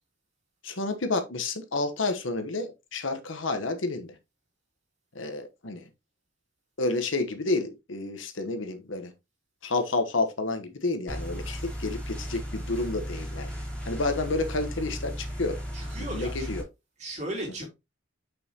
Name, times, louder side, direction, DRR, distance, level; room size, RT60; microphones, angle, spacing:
voice 1, 0.6-4.1 5.1-5.8 6.8-9.1 9.6-13.5 13.9-15.6 16.0-16.6, left 3 dB, 80° left, 1.1 m, -30 dB
sound 1, 11.1-16.6, equal, 5° left, 2.6 m, -35 dB
voice 2, 15.7-16.5 17.0-17.7, right 1 dB, 35° right, 3.1 m, -36 dB
6.9 x 5.5 x 2.9 m
head